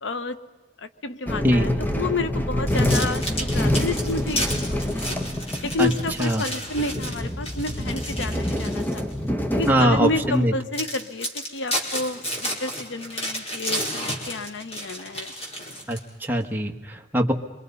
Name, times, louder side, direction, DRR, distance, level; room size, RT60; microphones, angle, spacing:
voice 1, 0.0-0.4 0.8-4.8 5.0-5.2 5.6-9.0 9.5-15.3, left 2 dB, 90° left, 12 dB, 1.0 m, -30 dB
sound 1, 1.3-10.3, left 1 dB, 10° left, 1.1 m, -26 dB
sound 2, 2.7-9.1 9.6-9.8 10.3-10.4 10.7-16.2, equal, 35° left, 4.7 m, -32 dB
voice 2, 9.7-10.5 15.9-17.3, equal, 10° right, 1 dB, 1.5 m, -21 dB
27.0 x 23.5 x 5.5 m, 1.2 s
head